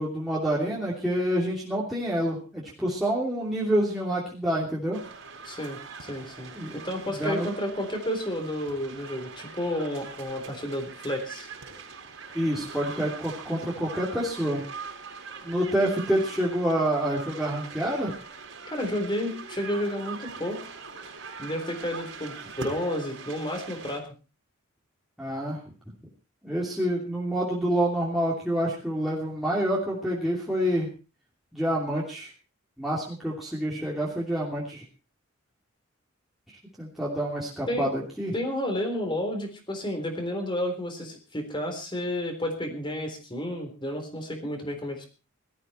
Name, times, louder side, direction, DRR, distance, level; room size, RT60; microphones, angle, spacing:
voice 1, 0.0-5.0 6.5-6.7 7.2-7.5 12.3-14.6 15.4-18.1 25.2-25.6 26.4-30.9 31.5-32.3 32.8-34.8 36.5-38.3, right 1 dB, ahead, -6 dB, 2.9 m, -27 dB
sound 1, 4.9-24.0, right 5 dB, 65° right, 4.5 m, -42 dB
voice 2, 5.4-6.5 6.8-11.5 18.7-20.6 21.4-24.0 37.7-37.9 38.3-45.1, left 1 dB, 25° left, 5 dB, 3.8 m, -31 dB
18.0 x 13.5 x 4.4 m, 0.34 s
head